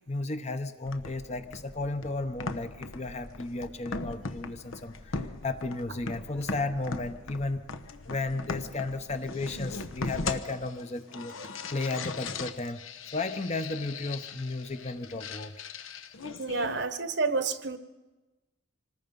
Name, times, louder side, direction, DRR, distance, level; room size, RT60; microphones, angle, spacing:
voice 1, 0.1-7.6 8.1-11.3 11.7-12.8 13.1-15.5, left 2 dB, 30° left, 9 dB, 0.9 m, -34 dB
sound 1, 0.8-16.9, left 3 dB, 75° left, 1.1 m, -39 dB
voice 2, 16.4-17.8, right 4 dB, 55° right, 11 dB, 1.1 m, -29 dB
26.0 x 20.0 x 5.4 m, 1.1 s
head